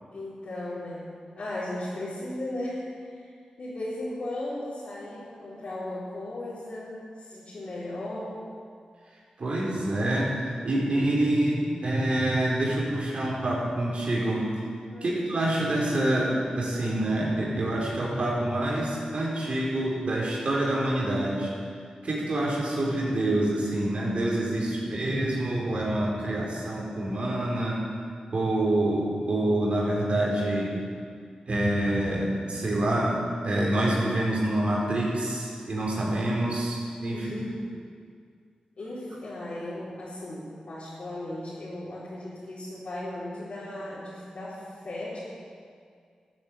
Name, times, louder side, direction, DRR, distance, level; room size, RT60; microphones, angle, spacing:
voice 1, 0.1-1.1 1.4-8.4 14.9-15.3 32.8-33.2 37.1-37.6 38.8-45.2, left 1 dB, 65° left, -11 dB, 4.0 m, -36 dB
voice 2, 9.4-14.5 15.0-21.5 22.0-27.8 28.3-30.7 31.5-37.3, right 1 dB, 60° right, -4 dB, 4.5 m, -26 dB
13.0 x 8.7 x 7.9 m, 2.2 s
cardioid pair, 50°, 2 cm